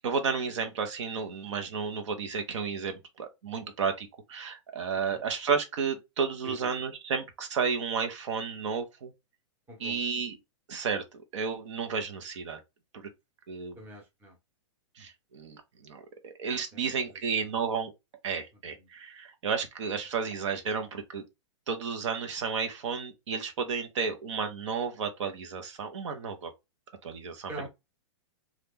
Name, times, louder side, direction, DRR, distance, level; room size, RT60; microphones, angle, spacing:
voice 1, 0.0-9.1 9.8-10.4 10.7-11.0 11.3-12.6 12.9-13.1 13.5-13.8 15.0-17.9 18.2-21.2 21.7-26.5 27.0-27.7, right 5 dB, 70° right, 0.8 m, -32 dB
voice 2, 9.7-10.1 13.8-14.4 16.7-17.5 18.7-18.9 27.5-27.7, right 1 dB, 15° right, 0.8 m, -45 dB
2.8 x 2.4 x 3.6 m
hypercardioid pair, 145°, 16 cm